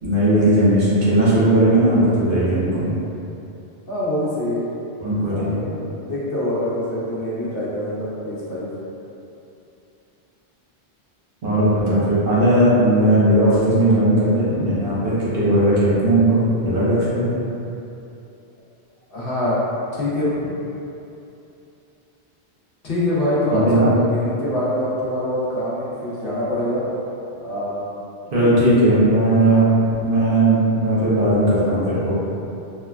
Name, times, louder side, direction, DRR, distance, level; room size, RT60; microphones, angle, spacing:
voice 1, 0.0-2.9 5.0-5.5 11.4-17.3 23.5-23.9 28.3-29.6 30.0-32.1, right 1 dB, 60° right, -10 dB, 0.9 m, -17 dB
voice 2, 3.9-4.7 5.3-8.7 19.1-19.6 19.9-20.5 22.8-26.8 27.4-27.9 28.2-28.5 29.5-29.7, left 1 dB, 60° left, -8 dB, 0.8 m, -24 dB
3.0 x 2.1 x 2.3 m, 2.8 s
omnidirectional pair, 1.1 m